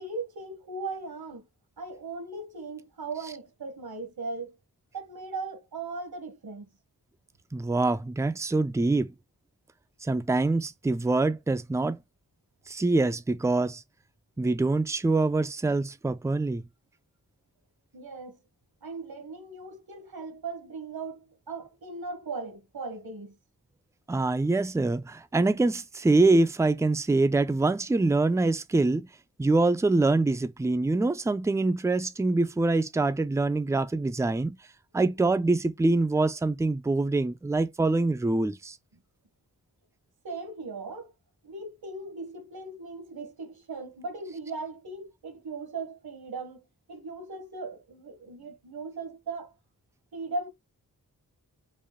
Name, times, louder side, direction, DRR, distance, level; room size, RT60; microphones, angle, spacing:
voice 1, 0.0-1.5 1.8-4.6 4.9-6.7 17.9-18.4 18.8-23.4 40.2-41.1 41.4-49.5 50.1-50.5, right 3 dB, 70° right, 1.2 m, -38 dB
voice 2, 7.5-9.1 10.0-12.0 12.7-13.8 14.4-16.6 24.1-29.1 29.4-34.6 34.9-38.8, right 2 dB, 10° right, 0.4 m, -25 dB
4.7 x 2.4 x 3.6 m
wide cardioid pair, 65°, 38 cm